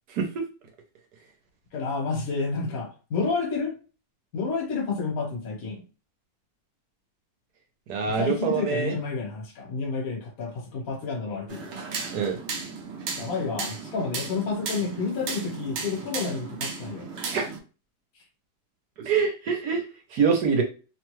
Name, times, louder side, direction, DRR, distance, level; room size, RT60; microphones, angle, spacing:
voice 1, 1.7-3.7 4.3-5.8 8.1-11.7 13.1-17.1, left 4 dB, 55° left, 1.3 m, -30 dB
voice 2, 7.9-9.0 12.1-12.4 17.2-17.5 19.0-19.8 20.1-20.6, right 6 dB, 70° right, 1.1 m, -24 dB
sound 1, 11.5-17.6, right 4 dB, 85° right, 0.6 m, -35 dB
3.0 x 2.2 x 3.0 m
omnidirectional pair, 1.9 m